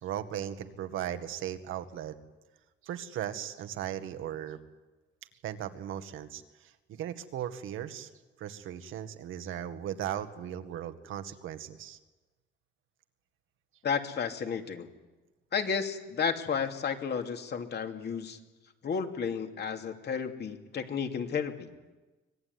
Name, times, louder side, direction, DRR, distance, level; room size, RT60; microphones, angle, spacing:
voice 1, 0.0-2.2 2.8-4.6 5.4-8.1 8.4-12.0, right 10 dB, 85° right, 9 dB, 1.9 m, -37 dB
voice 2, 13.8-14.9 15.5-18.4 18.8-21.7, left 6 dB, 55° left, 5 dB, 2.8 m, -32 dB
25.0 x 19.5 x 9.7 m, 1.2 s
cardioid pair, 90°, 20 cm